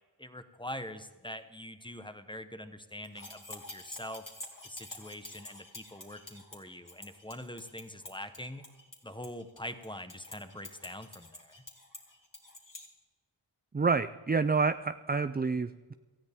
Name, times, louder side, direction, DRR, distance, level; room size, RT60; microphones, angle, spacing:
voice 1, 0.2-4.2 4.6-8.6 9.0-11.6, left 1 dB, 10° left, 9 dB, 1.1 m, -44 dB
sound 1, 3.0-12.9, left 2 dB, 40° left, 2.5 m, -48 dB
voice 2, 13.7-15.9, right 4 dB, 20° right, 12 dB, 0.4 m, -28 dB
18.0 x 13.5 x 3.6 m, 1.3 s
wide cardioid pair, 60°, 48 cm